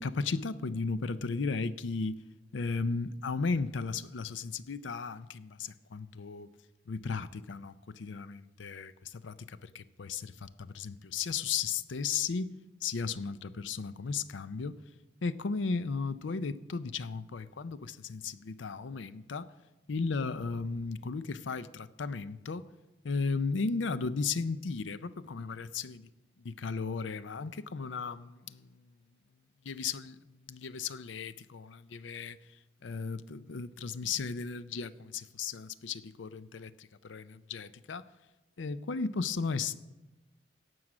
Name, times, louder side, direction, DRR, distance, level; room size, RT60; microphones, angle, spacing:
voice 1, 0.0-2.2 2.5-6.5 6.9-12.5 12.8-14.8 15.2-19.5 19.9-22.7 23.0-26.1 26.4-28.7 29.6-32.4 32.8-38.1 38.6-39.8, left 4 dB, 90° left, 0.5 m, -35 dB
17.0 x 6.4 x 6.0 m
head